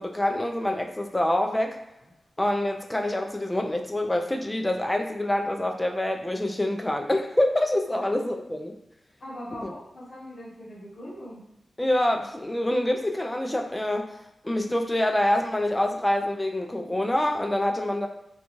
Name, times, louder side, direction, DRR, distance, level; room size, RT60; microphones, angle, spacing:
voice 1, 0.0-1.8 2.4-8.8 9.6-9.7 11.8-14.1 14.4-18.1, left 1 dB, 15° left, 3 dB, 0.3 m, -26 dB
voice 2, 9.2-11.4, equal, 65° left, -7 dB, 0.9 m, -40 dB
2.7 x 2.2 x 2.9 m, 0.87 s
wide cardioid pair, 120°, 0 cm